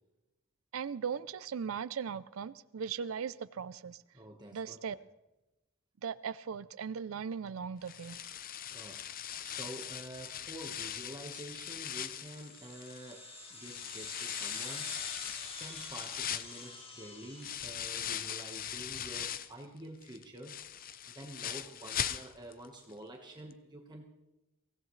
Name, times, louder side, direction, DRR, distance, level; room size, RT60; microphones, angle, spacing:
voice 1, 0.7-4.0 4.5-5.0 6.0-8.2, right 6 dB, 80° right, 15 dB, 0.4 m, -38 dB
voice 2, 4.1-5.0 8.7-9.1 9.4-15.1 15.4-20.6 21.1-24.1, right 1 dB, 20° right, 1 dB, 1.3 m, -48 dB
sound 1, 7.9-13.1 13.6-19.6 20.0-22.7 22.9-23.0 23.5-23.6, left 10 dB, 45° left, 0.6 m, -40 dB
sound 2, 12.0-18.9, left 3 dB, 30° left, 1.9 m, -47 dB
23.5 x 17.0 x 3.2 m, 1.0 s
head